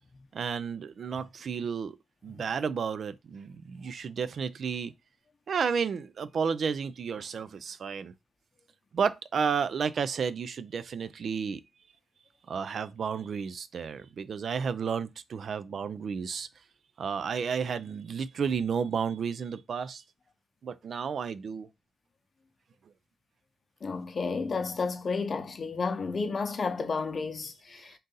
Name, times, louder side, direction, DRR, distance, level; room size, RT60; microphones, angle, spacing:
voice 1, 0.3-2.0 2.2-4.9 5.5-8.1 8.9-11.6 12.5-16.5 17.0-20.0 20.6-21.7, right 6 dB, 60° right, 0.3 m, -32 dB
voice 2, 23.8-27.9, left 4 dB, 45° left, 0.7 m, -31 dB
3.8 x 2.6 x 3.8 m
cardioid pair, 80°, 0 cm